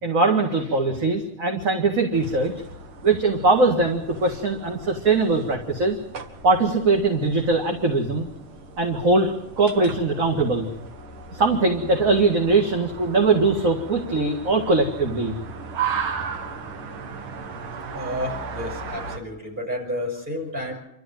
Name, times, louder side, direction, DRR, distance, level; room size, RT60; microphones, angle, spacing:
voice 1, 0.0-2.5 3.0-6.0 6.4-8.3 8.8-10.7 11.3-15.3, right 3 dB, 40° right, 2 dB, 2.2 m, -21 dB
sound 1, 2.1-19.2, right 5 dB, 90° right, 2.5 m, -36 dB
voice 2, 17.9-20.7, equal, 20° right, 0 dB, 6.7 m, -30 dB
27.0 x 13.0 x 9.2 m, 0.88 s
omnidirectional pair, 2.3 m